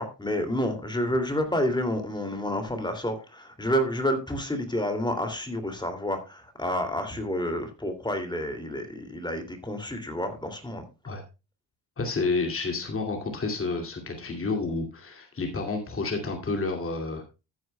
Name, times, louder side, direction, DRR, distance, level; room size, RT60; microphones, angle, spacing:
voice 1, 0.0-10.9, equal, 10° left, 2.5 m, -29 dB
voice 2, 12.0-17.2, left 3 dB, 30° left, 2.4 m, -30 dB
14.0 x 9.5 x 2.2 m
cardioid pair, 115°, 43 cm